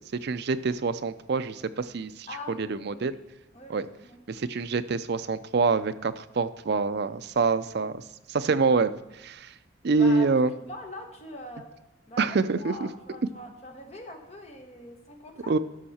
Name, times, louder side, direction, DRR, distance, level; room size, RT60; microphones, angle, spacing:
voice 1, 0.2-3.1 3.7-3.9 4.3-8.0 8.3-8.9 9.2-9.5 9.8-10.5 12.2-12.9 15.5-15.6, right 4 dB, 55° right, 12 dB, 0.4 m, -26 dB
voice 2, 2.3-3.2 3.5-4.2 9.9-10.3 10.6-11.7 12.1-15.5, left 2 dB, 30° left, 3 dB, 1.3 m, -43 dB
12.5 x 6.4 x 4.3 m, 0.99 s
head